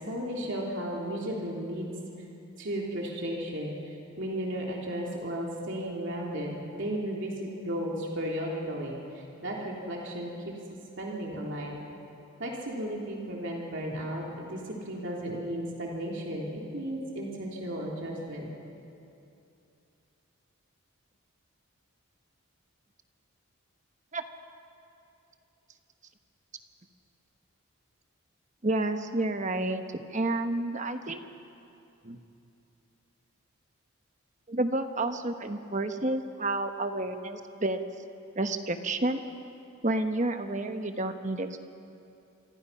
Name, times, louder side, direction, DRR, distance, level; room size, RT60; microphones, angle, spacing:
voice 1, 0.1-1.9 2.6-3.7 4.2-10.6 11.0-11.8 12.4-18.5, equal, 55° right, -2 dB, 3.3 m, -34 dB
voice 2, 28.6-31.2 32.0-32.2 34.5-37.8 38.3-39.2 39.8-41.6, right 2 dB, 35° right, 7 dB, 1.1 m, -30 dB
27.0 x 23.5 x 5.7 m, 2.7 s
head